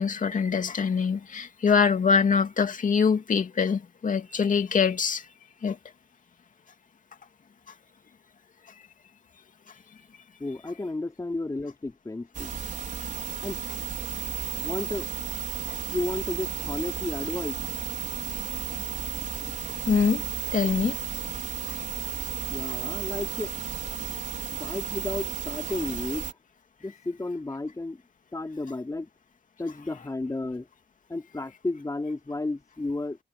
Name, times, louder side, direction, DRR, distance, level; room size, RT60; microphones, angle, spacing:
voice 1, 0.0-5.3 5.6-5.8 19.9-20.2 20.5-21.0, left 6 dB, 40° left, 2.6 m, -24 dB
voice 2, 10.4-12.6 13.4-13.6 14.5-15.1 15.8-17.6 22.5-23.5 24.5-26.3 26.8-28.0 28.3-29.1 29.6-30.7 31.1-33.2, left 2 dB, 15° left, 4.2 m, -32 dB
sound 1, 12.3-26.3, right 9 dB, 40° right, 4.7 m, -33 dB
cardioid pair, 90°, 20 cm